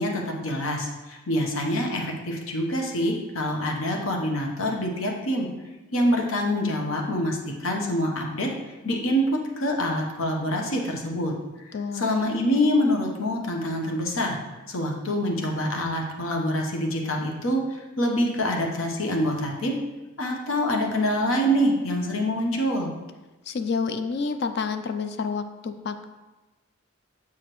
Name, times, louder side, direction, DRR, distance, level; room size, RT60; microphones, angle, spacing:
voice 1, 0.0-5.5 5.9-8.5 8.8-11.7 11.9-14.4 14.7-19.8 20.2-22.9, equal, 80° left, 1 dB, 0.9 m, -26 dB
voice 2, 11.7-12.1 23.5-26.0, left 5 dB, 55° left, 9 dB, 0.4 m, -29 dB
7.1 x 4.9 x 3.0 m, 1.1 s
head